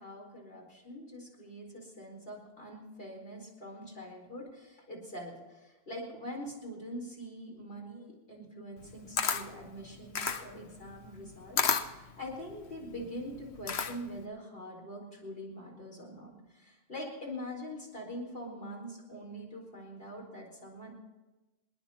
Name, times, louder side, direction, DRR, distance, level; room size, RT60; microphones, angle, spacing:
voice 1, 0.0-20.9, equal, 60° left, -2 dB, 4.7 m, -44 dB
Camera, 8.8-14.2, left 6 dB, 85° left, 1.2 m, -33 dB
27.0 x 10.5 x 4.3 m, 1.1 s
omnidirectional pair, 1.1 m